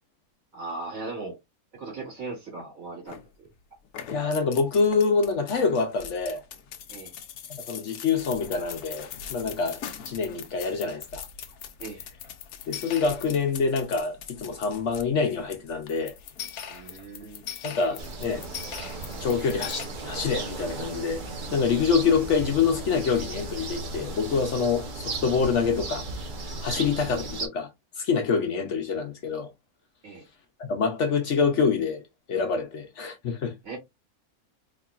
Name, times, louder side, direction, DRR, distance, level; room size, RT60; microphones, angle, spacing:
voice 1, 0.5-1.4 1.7-3.5 6.9-7.1 11.8-12.0 16.7-18.0 26.7-26.8 30.0-30.3 33.6-33.8, right 3 dB, 65° right, 2.5 m, -38 dB
sound 1, 3.1-3.5 3.8-19.9, left 8 dB, 85° left, 1.2 m, -41 dB
voice 2, 4.1-6.4 7.5-11.2 12.7-16.1 17.6-18.5 19.2-21.2 21.5-26.1 26.6-27.7 28.0-29.5 30.6-32.0 32.3-33.5, left 5 dB, 60° left, 0.9 m, -26 dB
sound 2, 18.0-27.5, right 3 dB, 45° right, 0.7 m, -35 dB
4.1 x 2.9 x 2.3 m
omnidirectional pair, 1.6 m